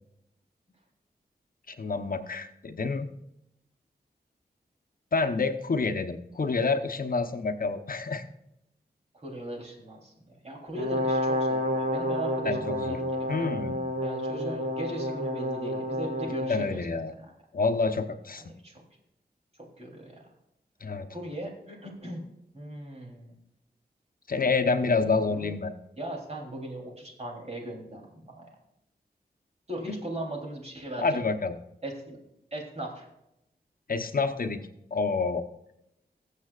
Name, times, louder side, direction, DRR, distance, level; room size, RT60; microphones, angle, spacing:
voice 1, 1.7-3.1 5.1-8.2 12.4-13.0 13.3-13.8 16.5-17.1 17.5-18.4 20.8-21.1 24.3-25.7 29.9-30.0 31.0-31.6 33.9-34.6 34.9-35.4, left 4 dB, 60° left, 6 dB, 0.8 m, -28 dB
voice 2, 9.1-10.1 10.4-13.0 13.4-13.5 14.0-17.3 18.4-18.8 19.8-20.3 21.1-22.2 22.5-23.3 25.0-25.5 26.0-28.5 29.7-31.2 31.8-32.2 32.5-33.1, right 1 dB, 40° right, -1 dB, 3.3 m, -38 dB
Brass instrument, 10.7-16.6, equal, 85° right, 2.7 m, -29 dB
21.5 x 7.5 x 2.4 m, 0.84 s
wide cardioid pair, 105°, 17 cm